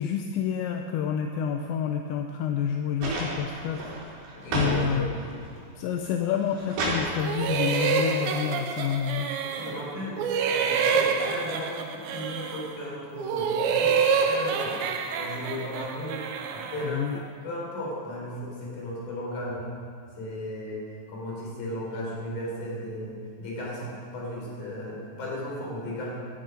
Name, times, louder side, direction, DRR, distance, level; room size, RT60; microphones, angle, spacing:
voice 1, 0.0-4.3 4.5-5.1 5.8-9.3 16.8-17.2, left 8 dB, 80° left, 4 dB, 2.7 m, -29 dB
sound 1, 3.0-4.8 5.1-5.7 6.2-7.1 8.3-8.4, right 2 dB, 60° right, 5.4 m, -31 dB
voice 2, 4.4-5.1 9.4-10.2 10.5-14.8 15.2-16.2 16.5-19.7 20.2-20.8 21.1-26.1, left 1 dB, 40° left, -4 dB, 5.1 m, -35 dB
sound 2, 7.2-9.9 10.2-12.7 13.2-16.9, right 6 dB, 75° right, 2.9 m, -27 dB
17.0 x 13.0 x 5.2 m, 2.2 s
omnidirectional pair, 5.7 m